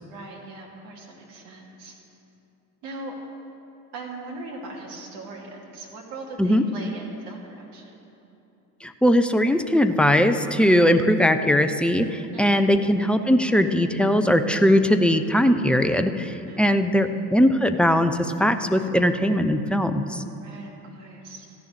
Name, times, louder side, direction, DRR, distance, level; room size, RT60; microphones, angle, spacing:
voice 1, 0.0-1.9 2.8-3.1 3.9-7.9 12.3-12.8 16.5-16.8 20.4-21.5, right 2 dB, 65° right, -2 dB, 2.7 m, -40 dB
voice 2, 8.8-20.2, equal, ahead, 8 dB, 0.7 m, -20 dB
13.5 x 7.1 x 9.7 m, 2.8 s
figure-of-eight pair, 65°, 47 cm